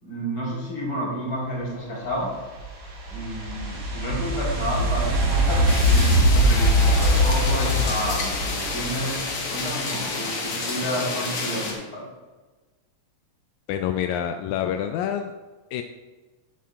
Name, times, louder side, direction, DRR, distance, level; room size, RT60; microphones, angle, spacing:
voice 1, 0.0-2.3 3.1-12.1, equal, 40° left, -5 dB, 4.6 m, -30 dB
sound 1, 2.1-9.3, equal, 85° right, 4.3 m, -22 dB
sound 2, 5.7-11.7, left 3 dB, 70° left, 3.2 m, -30 dB
voice 2, 13.7-15.3 15.7-15.8, left 9 dB, 85° left, 6 dB, 1.9 m, -27 dB
13.0 x 10.5 x 2.5 m, 1.3 s
omnidirectional pair, 3.3 m